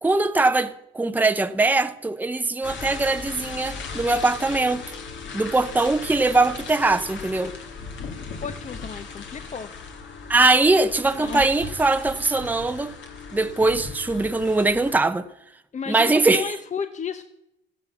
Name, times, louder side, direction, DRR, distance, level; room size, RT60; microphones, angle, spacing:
voice 1, 0.0-4.8 5.3-7.5 10.3-12.9 13.3-15.2 15.9-16.5, right 3 dB, 10° right, 0.7 m, -21 dB
sound 1, 2.6-14.9, left 5 dB, 70° left, 2.1 m, -37 dB
voice 2, 8.4-9.7 11.1-11.5 15.7-17.2, left 6 dB, 40° left, 0.8 m, -33 dB
14.0 x 10.5 x 7.1 m
cardioid pair, 90°, 20 cm